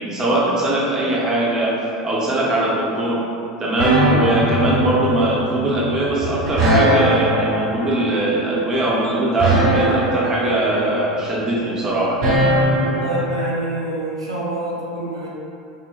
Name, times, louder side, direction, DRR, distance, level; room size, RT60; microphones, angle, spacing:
voice 1, 0.0-1.8 2.0-3.2 3.6-12.2, right 2 dB, 25° right, -5 dB, 0.6 m, -20 dB
sound 1, 3.8-13.4, right 1 dB, 70° right, 1.0 m, -20 dB
voice 2, 13.0-15.3, right 1 dB, 85° right, -6 dB, 0.5 m, -26 dB
3.6 x 2.1 x 2.3 m, 2.6 s
figure-of-eight pair, 80°, 3 cm